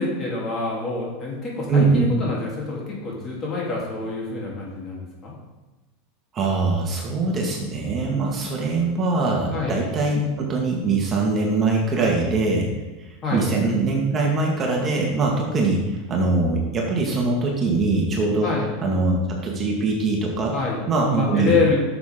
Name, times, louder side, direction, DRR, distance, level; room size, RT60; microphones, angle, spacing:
voice 1, 0.0-5.3 9.5-9.8 13.2-13.5 18.4-18.7 20.5-20.8 21.1-21.8, left 4 dB, 30° left, -4 dB, 3.4 m, -26 dB
voice 2, 1.7-2.1 6.3-12.7 13.0-18.5 18.8-20.6 20.9-21.6, right 3 dB, 30° right, -1 dB, 1.9 m, -22 dB
11.0 x 6.9 x 3.8 m, 1.1 s
supercardioid pair, 120°, 0 cm